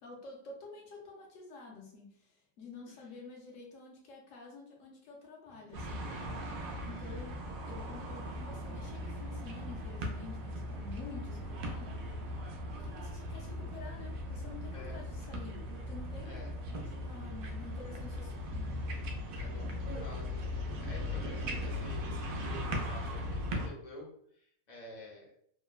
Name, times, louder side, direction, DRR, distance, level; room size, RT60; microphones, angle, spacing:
voice 1, 0.0-6.4 6.9-12.0 12.8-16.3 16.7-18.8, left 4 dB, 70° left, -1 dB, 1.0 m, -49 dB
sound 1, 5.7-23.7, left 1 dB, 85° right, 1.0 m, -38 dB
voice 2, 6.9-7.3 14.7-15.0 16.2-16.5 19.3-25.3, left 2 dB, 40° left, -2 dB, 0.7 m, -50 dB
3.0 x 2.0 x 2.3 m, 0.66 s
omnidirectional pair, 1.4 m